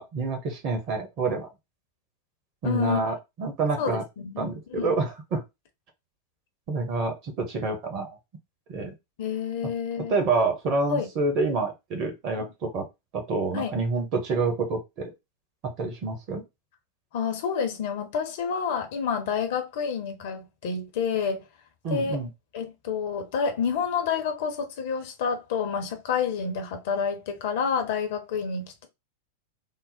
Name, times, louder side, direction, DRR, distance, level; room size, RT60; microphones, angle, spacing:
voice 1, 0.0-1.5 2.6-4.0 4.4-5.4 6.7-8.1 8.7-8.9 9.6-9.7 10.1-12.9 13.1-15.1 15.6-16.4 21.8-22.3, right 3 dB, 40° right, 1.3 m, -28 dB
voice 2, 2.6-3.0 3.8-4.9 9.2-10.1 10.9-11.1 12.4-12.5 13.5-13.7 17.1-21.4 21.9-22.2 22.5-28.9, left 6 dB, 50° left, 0.9 m, -29 dB
3.7 x 2.1 x 4.2 m
figure-of-eight pair, 90°, 0 cm